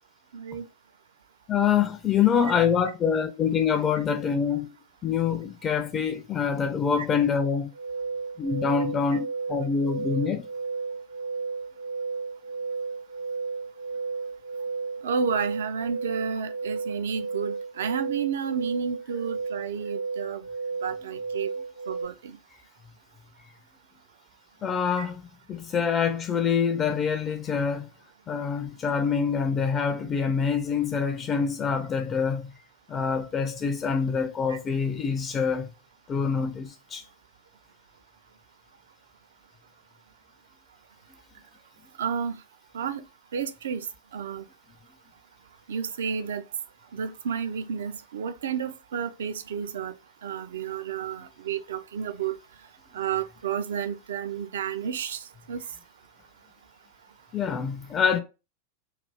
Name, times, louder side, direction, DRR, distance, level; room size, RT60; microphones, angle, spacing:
voice 1, 0.3-0.6 7.0-7.1 9.1-9.2 15.0-20.4 20.8-21.5 21.9-22.4 25.0-25.1 34.5-34.6 42.0-42.4 42.7-43.0 43.3-43.9 44.1-44.4 45.7-46.4 46.9-49.9 50.2-52.4 52.9-55.6, right 7 dB, 60° right, 0.3 m, -31 dB
voice 2, 1.5-4.7 5.0-7.7 8.4-10.4 24.6-27.8 28.3-32.5 32.9-35.7 36.1-37.0 57.3-58.2, left 6 dB, 25° left, 0.4 m, -25 dB
sound 1, 7.7-22.1, right 4 dB, 65° left, 0.9 m, -33 dB
3.2 x 2.3 x 3.4 m
figure-of-eight pair, 90°, 0 cm